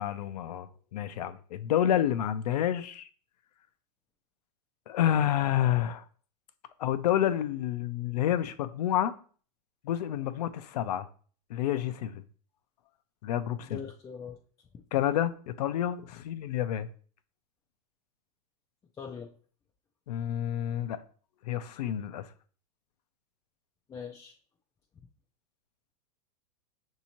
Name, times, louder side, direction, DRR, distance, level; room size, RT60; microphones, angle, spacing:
voice 1, 0.0-3.1 4.9-6.0 6.8-9.1 9.8-11.1 11.5-12.2 13.2-13.8 14.9-15.3 15.6-16.9 20.1-21.0 21.5-22.3, left 11 dB, 75° left, 0.5 m, -29 dB
voice 2, 13.7-14.4 14.7-14.8 19.0-19.3 23.9-24.4 25.0-25.1, left 6 dB, 15° left, 0.4 m, -42 dB
6.1 x 2.8 x 2.9 m
hypercardioid pair, 120°, 21 cm